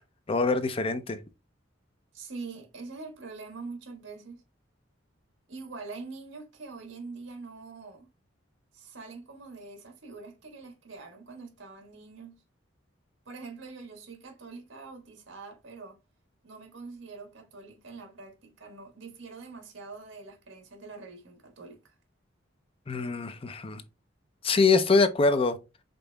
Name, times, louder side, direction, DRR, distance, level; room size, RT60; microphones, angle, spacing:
voice 1, 0.3-1.2 22.9-23.8 24.4-25.6, left 4 dB, 30° left, 0.5 m, -24 dB
voice 2, 2.1-4.4 5.5-8.1 8.7-12.4 13.2-16.0 16.4-21.9, right 4 dB, 85° right, 1.4 m, -44 dB
5.2 x 4.0 x 2.2 m
head